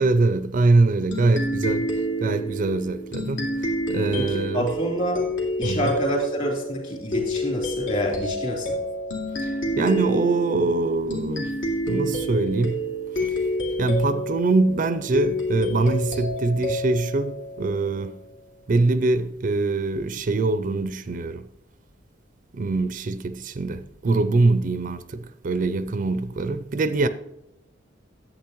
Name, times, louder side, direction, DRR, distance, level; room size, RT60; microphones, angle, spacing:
voice 1, 0.0-1.9 2.2-4.7 5.6-5.9 9.4-11.6 11.9-12.8 13.2-13.4 13.8-18.2 18.7-21.5 22.5-27.1, right 3 dB, 45° right, 0.4 m, -23 dB
sound 1, 1.1-18.3, equal, 75° left, 2.4 m, -29 dB
voice 2, 4.2-5.2 5.6-8.8, equal, 40° left, 3.1 m, -27 dB
10.5 x 8.0 x 3.0 m
head